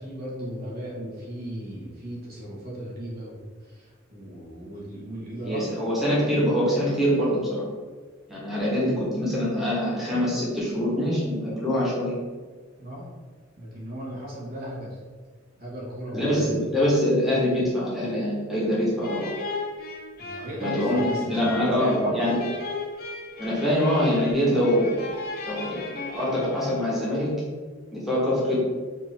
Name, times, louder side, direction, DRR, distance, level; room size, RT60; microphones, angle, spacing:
voice 1, 0.0-5.6 6.0-6.1 12.8-13.1 13.6-15.0 15.6-16.6 20.2-22.2, right 1 dB, 50° right, -5 dB, 1.2 m, -35 dB
voice 2, 5.5-7.6 8.3-12.1 16.1-19.3 20.6-22.4 23.4-24.9 25.5-25.8 26.1-27.3 27.9-28.6, equal, ahead, -8 dB, 1.1 m, -24 dB
sound 1, 19.0-27.1, left 3 dB, 50° left, 0.6 m, -36 dB
4.5 x 2.6 x 3.3 m, 1.5 s
head